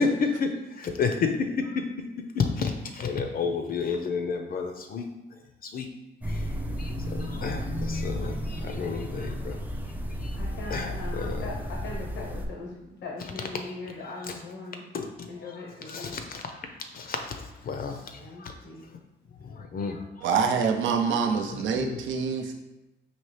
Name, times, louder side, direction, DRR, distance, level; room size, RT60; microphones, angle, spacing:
voice 1, 0.0-5.1 5.6-5.9 6.3-6.5 6.8-9.6 10.2-10.4 10.7-11.4 14.9-15.5 15.9-16.6 16.9-18.5 19.4-20.0 21.5-22.0, left 5 dB, 50° left, 5 dB, 0.5 m, -31 dB
sound 1, 6.2-12.5, equal, 10° right, 0.4 m, -33 dB
voice 2, 10.4-14.8 15.3-16.2 18.1-18.8, left 3 dB, 85° left, -2 dB, 0.8 m, -40 dB
voice 3, 20.2-22.5, right 5 dB, 75° right, 4 dB, 0.6 m, -26 dB
4.3 x 2.8 x 3.2 m, 1.0 s
cardioid pair, 90°, 20 cm